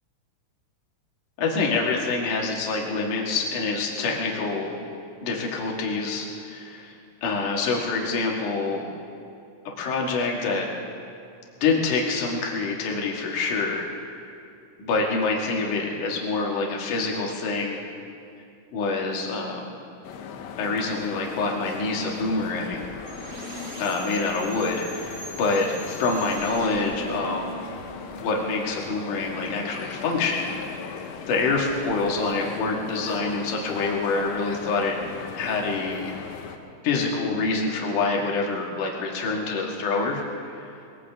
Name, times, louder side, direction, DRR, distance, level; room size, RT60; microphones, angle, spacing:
voice 1, 1.4-4.7 5.2-8.9 9.8-10.7 11.6-13.8 14.8-17.8 18.7-19.7 20.6-22.8 23.8-27.5 28.2-30.9 31.3-34.9 35.3-36.1 36.8-40.6, left 3 dB, 55° left, -1 dB, 2.5 m, -26 dB
sound 1, 20.0-36.6, left 6 dB, 75° left, 2.9 m, -38 dB
sound 2, 23.1-28.9, right 1 dB, 35° right, 5.7 m, -40 dB
21.5 x 17.5 x 3.5 m, 2.5 s
omnidirectional pair, 5.7 m